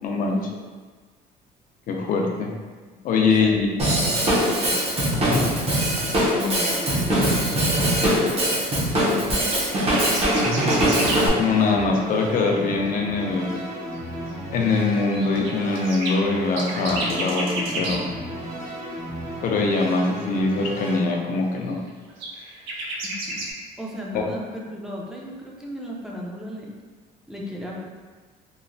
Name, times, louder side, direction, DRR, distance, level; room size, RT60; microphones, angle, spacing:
voice 1, 0.0-0.5 1.9-2.5 3.0-3.7 5.1-5.5 11.4-13.6 14.5-18.1 19.4-21.8 24.1-24.2, left 3 dB, 55° left, 1 dB, 0.5 m, -23 dB
voice 2, 3.2-3.6 4.2-4.9 5.9-8.3 9.0-10.4 23.0-26.7 27.3-27.8, left 1 dB, 5° right, -4 dB, 0.5 m, -36 dB
Drum kit / Drum, 3.8-11.3, right 1 dB, 35° right, 0.7 m, -22 dB
sound 1, 9.5-11.2 12.9-13.0 13.6-13.7 14.0-14.1 14.3-14.4 14.9-18.0 21.9-23.5, right 1 dB, 85° right, 0.5 m, -31 dB
sound 2, 10.9-21.0, right 1 dB, 65° right, 1.4 m, -34 dB
3.0 x 2.1 x 2.6 m, 1.4 s
cardioid pair, 110°, 17 cm